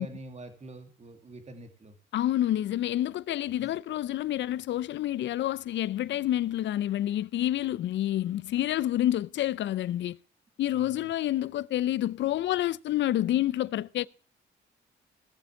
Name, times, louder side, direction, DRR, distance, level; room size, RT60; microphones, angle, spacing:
voice 1, 0.0-2.0 3.5-3.7 10.7-11.1, right 2 dB, 35° right, 2.4 m, -46 dB
voice 2, 2.1-10.2 10.6-14.1, left 13 dB, 65° left, 0.5 m, -28 dB
16.5 x 7.0 x 7.1 m
cardioid pair, 90°, 20 cm